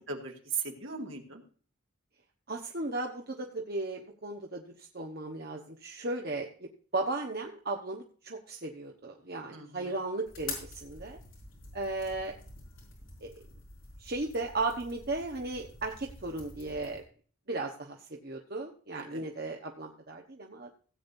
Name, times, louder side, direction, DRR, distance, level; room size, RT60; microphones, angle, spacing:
voice 1, 0.1-1.4 9.5-9.9 18.9-19.2, right 5 dB, 65° right, 2 dB, 2.2 m, -38 dB
voice 2, 2.5-11.2 11.7-12.4 13.2-13.3 14.0-17.0 17.5-20.7, right 2 dB, 45° right, 1 dB, 1.1 m, -36 dB
sound 1, 10.2-17.0, left 3 dB, 70° left, 5.1 m, -47 dB
17.0 x 8.7 x 2.7 m, 0.42 s
head